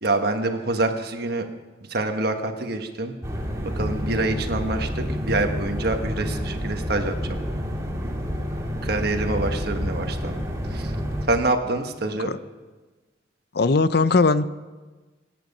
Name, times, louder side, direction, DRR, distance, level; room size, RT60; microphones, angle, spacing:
voice 1, 0.0-1.5 1.9-3.1 3.8-7.4 8.8-10.4 10.7-10.9 11.3-12.3, right 2 dB, 55° right, 5 dB, 1.3 m, -26 dB
sound 1, 3.2-11.3, equal, 15° right, 2.1 m, -29 dB
voice 2, 12.1-12.4 13.5-14.4, left 3 dB, 55° left, 14 dB, 0.6 m, -20 dB
25.0 x 9.2 x 5.4 m, 1.3 s
head